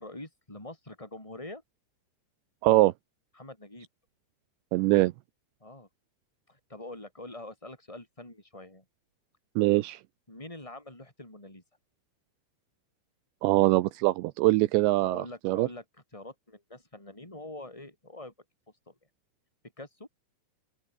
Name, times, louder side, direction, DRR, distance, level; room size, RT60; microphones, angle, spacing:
voice 1, 0.0-1.6 3.4-3.9 5.6-5.9 6.5-8.8 10.3-11.6 15.0-15.8 16.1-18.3 18.9-19.0 19.8-20.1, left 2 dB, 5° left, 7.3 m, -44 dB
voice 2, 2.6-2.9 4.7-5.1 9.6-10.0 13.4-15.7, right 18 dB, 85° right, 2.5 m, -23 dB
open air
omnidirectional pair, 5.9 m